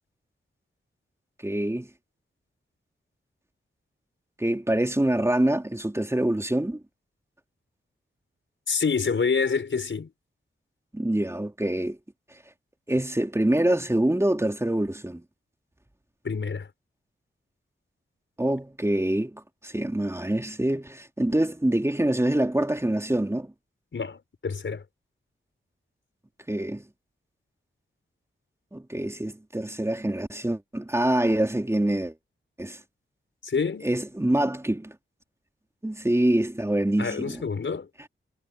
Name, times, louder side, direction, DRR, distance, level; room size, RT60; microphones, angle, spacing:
voice 1, 1.4-1.9 4.4-6.8 10.9-12.0 12.9-15.2 18.4-23.5 26.5-26.8 28.7-32.1 32.6-32.8 33.8-34.9 35.8-37.4, right 1 dB, 15° right, 3.3 m, -25 dB
voice 2, 8.7-10.1 16.2-16.7 23.9-24.8 33.4-33.9 37.0-37.9, left 5 dB, 65° left, 5.7 m, -27 dB
wide cardioid pair, 80°, 21 cm